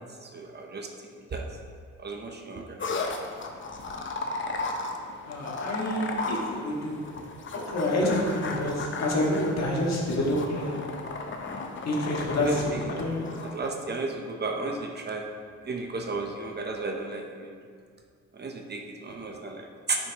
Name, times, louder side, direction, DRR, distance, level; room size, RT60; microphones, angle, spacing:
voice 1, 0.2-0.9 1.3-1.4 2.0-2.8 12.4-12.9 13.3-15.3 15.6-17.6 18.3-20.1, right 3 dB, 35° right, 2 dB, 0.9 m, -34 dB
sound 1, 2.8-13.7, left 3 dB, 40° left, 0.9 m, -35 dB
voice 2, 5.3-7.0 7.5-10.7 11.9-12.7 13.0-13.2, left 1 dB, 60° left, -4 dB, 2.0 m, -28 dB
9.2 x 6.2 x 3.1 m, 2.1 s
cardioid pair, 90°, 30 cm